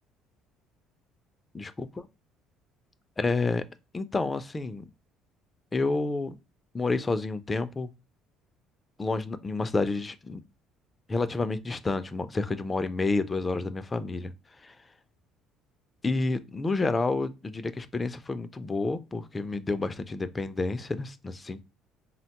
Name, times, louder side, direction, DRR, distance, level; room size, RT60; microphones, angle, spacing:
voice 1, 1.5-1.9 3.2-3.6 3.9-4.9 5.7-6.3 6.7-7.9 9.0-10.4 11.1-14.3 14.6-14.7 16.0-21.6, left 3 dB, 20° left, 0.3 m, -29 dB
3.7 x 2.1 x 2.8 m
cardioid pair, 115°, 0 cm